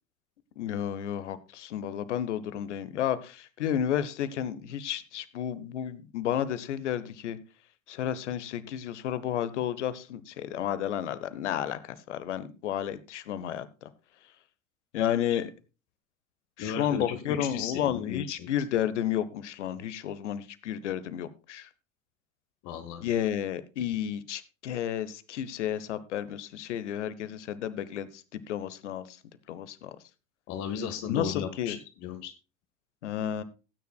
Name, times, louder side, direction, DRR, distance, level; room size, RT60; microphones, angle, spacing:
voice 1, 0.6-7.4 7.9-13.9 14.9-15.5 16.6-21.7 23.0-29.2 29.5-30.0 31.1-31.8 33.0-33.4, left 10 dB, 65° left, 15 dB, 1.0 m, -32 dB
voice 2, 16.6-18.5 22.6-23.1 30.5-32.3, left 7 dB, 45° left, 8 dB, 1.5 m, -35 dB
17.5 x 9.3 x 2.3 m, 0.31 s
figure-of-eight pair, 75°, 39 cm